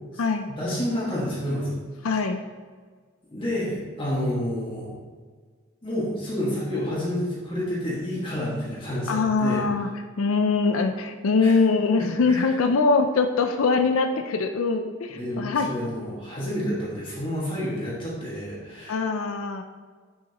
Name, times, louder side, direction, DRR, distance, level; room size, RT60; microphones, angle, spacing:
voice 1, 0.6-1.7 3.3-4.9 5.8-9.6 11.4-11.6 11.9-12.4 15.1-19.0, equal, 25° left, -7 dB, 1.7 m, -29 dB
voice 2, 2.0-2.4 9.1-9.9 10.2-15.7 18.9-19.6, left 4 dB, 90° left, 6 dB, 0.5 m, -23 dB
8.1 x 6.4 x 3.0 m, 1.5 s
head